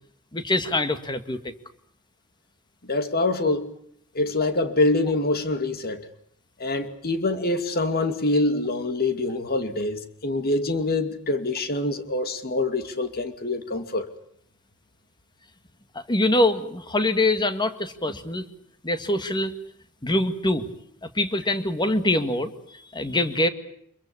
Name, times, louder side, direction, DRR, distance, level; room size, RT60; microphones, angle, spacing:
voice 1, 0.3-1.4 15.9-18.4 18.8-19.5 20.0-20.7 21.1-22.5 22.9-23.5, left 1 dB, 20° left, 1.9 m, -24 dB
voice 2, 2.9-3.7 4.1-6.1 6.6-14.1, left 2 dB, 45° left, 2.5 m, -25 dB
25.5 x 22.5 x 8.5 m
head